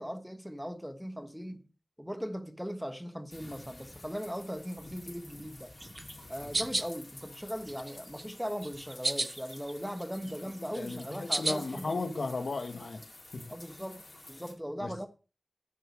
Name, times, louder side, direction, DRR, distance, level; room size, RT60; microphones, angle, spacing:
voice 1, 0.0-1.6 2.0-5.7 6.3-12.0 13.5-14.0 14.3-15.1, equal, ahead, 1.4 m, -39 dB
sound 1, 3.3-14.5, left 2 dB, 45° left, 4.4 m, -51 dB
sound 2, 5.8-6.9 7.4-8.2 8.6-9.7 10.0-11.7, right 2 dB, 35° right, 0.9 m, -33 dB
voice 2, 10.6-13.0 13.3-13.4 14.8-14.9, left 3 dB, 90° left, 1.9 m, -35 dB
11.0 x 6.3 x 6.4 m
wide cardioid pair, 85°, 0 cm